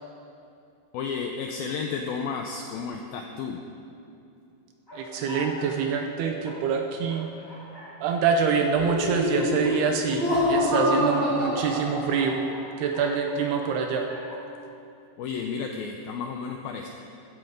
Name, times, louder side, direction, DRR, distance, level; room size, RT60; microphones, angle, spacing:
voice 1, 0.9-3.6 15.2-16.9, left 5 dB, 85° left, 3 dB, 2.1 m, -32 dB
sound 1, 4.9-5.9 6.4-6.6 7.1-7.9 9.0-9.8 10.3-10.8 11.6-13.8 14.0-14.5, equal, 5° left, 2.5 m, -44 dB
voice 2, 5.0-7.3 8.0-12.4 12.8-14.1, right 6 dB, 75° right, 4 dB, 2.6 m, -25 dB
Laughter, 8.7-12.5, left 1 dB, 10° right, 3.6 m, -26 dB
16.0 x 12.5 x 5.2 m, 2.6 s
omnidirectional pair, 5.2 m